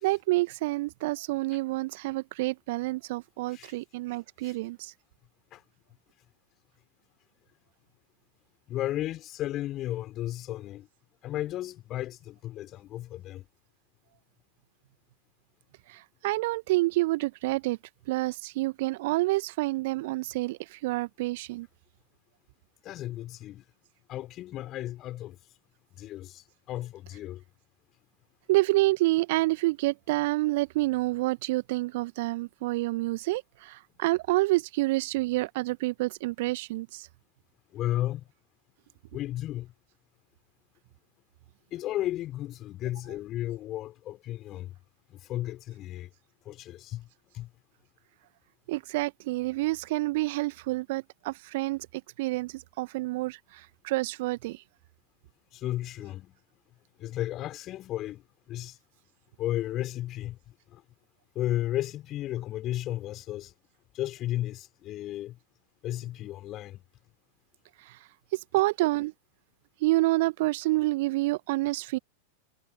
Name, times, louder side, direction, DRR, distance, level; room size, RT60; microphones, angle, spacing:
voice 1, 0.0-4.9 15.9-17.8 18.1-21.7 28.5-37.1 48.7-54.6 67.9-68.0 68.3-69.1 69.8-72.0, right 20 dB, 50° right, 1.5 m, -28 dB
voice 2, 8.7-10.9 11.2-13.5 22.8-23.6 24.1-25.4 26.0-27.4 37.7-38.3 39.1-39.7 41.7-44.7 45.1-46.1 46.5-47.1 47.3-47.5 55.5-56.4 57.0-58.8 59.4-60.4 60.7-60.8 61.4-63.5 63.9-65.4 65.8-66.8, left 14 dB, 35° left, 5.2 m, -34 dB
figure-of-eight pair, 90°, 0 cm